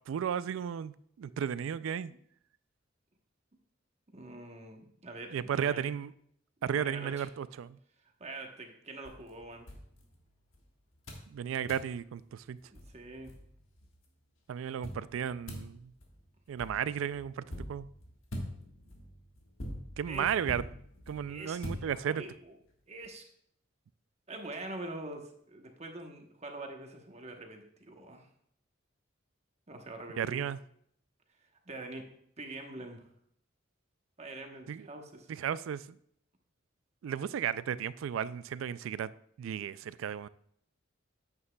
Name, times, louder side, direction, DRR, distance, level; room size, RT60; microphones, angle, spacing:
voice 1, 0.1-2.1 5.3-6.1 6.6-7.8 11.3-12.6 14.5-15.9 16.5-17.9 20.0-20.6 21.1-22.2 30.2-30.6 34.7-34.9 35.3-36.0 37.0-39.1 39.4-40.3, right 8 dB, 85° right, 17 dB, 0.3 m, -34 dB
voice 2, 4.1-5.9 6.6-7.3 8.2-9.7 12.7-13.3 20.1-20.3 21.3-22.5 22.9-23.2 24.3-28.3 29.7-30.5 31.7-32.0 32.4-33.1 34.2-35.3, right 2 dB, 35° right, 3 dB, 1.0 m, -44 dB
sound 1, 9.0-10.6 11.1-11.3 11.7-11.9 12.4-12.5 12.8-13.9 14.8-22.4, equal, 80° left, 1.5 m, -44 dB
9.6 x 8.2 x 2.3 m, 0.68 s
head